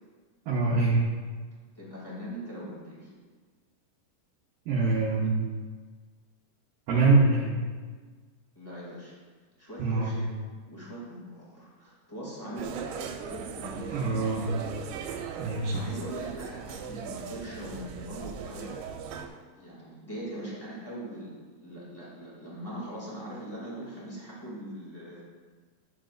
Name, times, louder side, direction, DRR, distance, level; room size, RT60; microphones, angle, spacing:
voice 1, 0.5-1.0 4.7-5.3 6.9-7.5 9.8-10.1 13.9-14.5 15.4-15.9, right 3 dB, 75° right, -5 dB, 2.3 m, -24 dB
voice 2, 1.7-3.1 8.5-9.1 9.6-10.3 10.7-14.6 15.3-25.2, right 1 dB, 15° left, -7 dB, 0.7 m, -41 dB
sound 1, 12.6-19.3, right 7 dB, 90° right, 2.9 m, -39 dB
12.5 x 7.3 x 2.5 m, 1.5 s
omnidirectional pair, 5.1 m